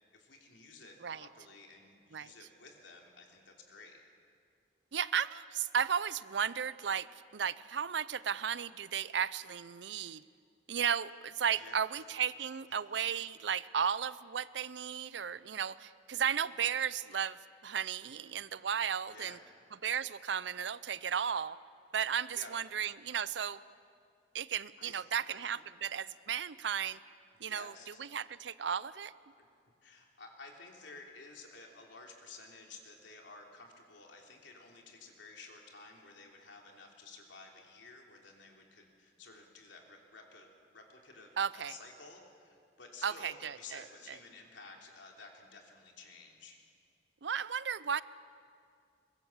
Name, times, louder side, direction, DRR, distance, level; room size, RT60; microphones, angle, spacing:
voice 1, 0.1-4.0 11.5-11.8 12.7-12.8 18.0-18.1 19.1-19.4 22.3-22.5 24.8-25.6 27.3-28.0 29.4-29.5 29.8-46.6, left 3 dB, 80° left, 1 dB, 3.3 m, -53 dB
voice 2, 4.9-7.1 7.3-10.2 10.7-17.4 17.6-19.4 19.8-21.6 21.9-23.6 24.3-27.0 27.4-27.7 28.0-29.1 41.4-41.7 43.0-43.8 47.2-48.0, right 8 dB, 75° right, 17 dB, 0.6 m, -34 dB
23.5 x 21.5 x 7.3 m, 2.3 s
head